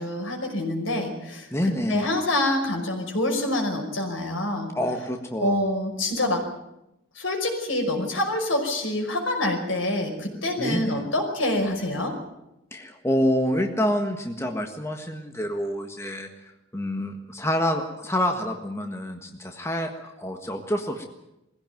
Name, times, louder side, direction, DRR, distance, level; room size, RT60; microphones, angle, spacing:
voice 1, 0.0-1.5 1.9-4.7 5.4-6.4 7.2-12.1, left 1 dB, 80° left, 3 dB, 5.5 m, -26 dB
voice 2, 1.5-2.1 4.7-5.6 10.6-11.0 12.7-16.3 16.7-21.0, equal, 15° left, 4 dB, 1.5 m, -27 dB
21.5 x 16.0 x 9.3 m, 0.88 s
head